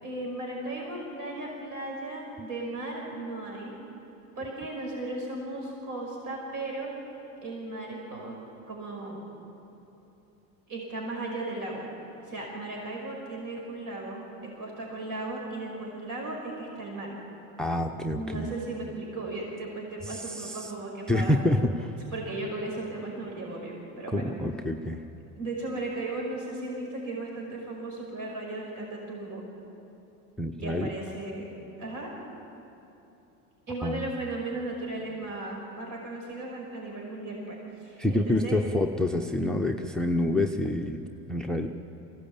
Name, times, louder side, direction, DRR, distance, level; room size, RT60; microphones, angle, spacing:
voice 1, 0.0-3.8 4.4-6.9 7.4-8.4 8.7-9.2 10.7-11.8 12.2-17.1 18.1-21.4 22.1-24.4 25.4-29.4 30.6-31.5 31.8-32.1 33.7-38.6, right 2 dB, 45° right, -1 dB, 5.5 m, -36 dB
voice 2, 17.6-18.5 20.0-20.7 21.1-21.9 24.1-25.0 30.4-30.9 33.8-34.0 38.0-41.0 41.3-41.7, left 1 dB, ahead, 6 dB, 0.9 m, -27 dB
22.0 x 17.0 x 8.7 m, 2.9 s
supercardioid pair, 90°, 43 cm